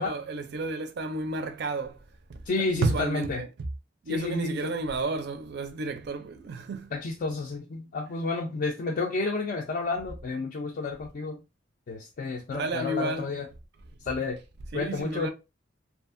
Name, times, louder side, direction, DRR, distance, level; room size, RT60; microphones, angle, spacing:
voice 1, 0.0-2.0 2.3-2.4 2.7-3.5 4.0-6.9 12.5-13.3 14.7-15.3, right 2 dB, 60° right, 0.4 m, -31 dB
voice 2, 2.5-3.4 4.1-4.7 6.9-11.4 11.9-13.5 14.0-14.4 14.7-15.3, left 3 dB, 45° left, 0.3 m, -31 dB
2.7 x 2.4 x 2.4 m
head